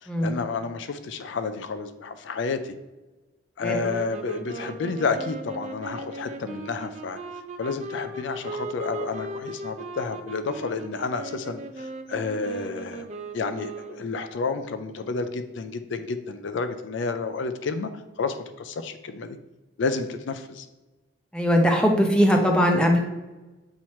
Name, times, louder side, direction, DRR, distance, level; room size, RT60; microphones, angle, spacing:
voice 1, 0.0-2.7 3.6-7.2 7.6-13.1 13.3-17.9 18.2-19.4 19.8-20.7, left 4 dB, 75° left, 9 dB, 0.4 m, -30 dB
sound 1, 3.8-14.2, right 2 dB, 35° right, 0.4 m, -38 dB
voice 2, 21.3-23.0, equal, 5° left, 1 dB, 0.6 m, -20 dB
7.4 x 3.0 x 4.2 m, 1.1 s
head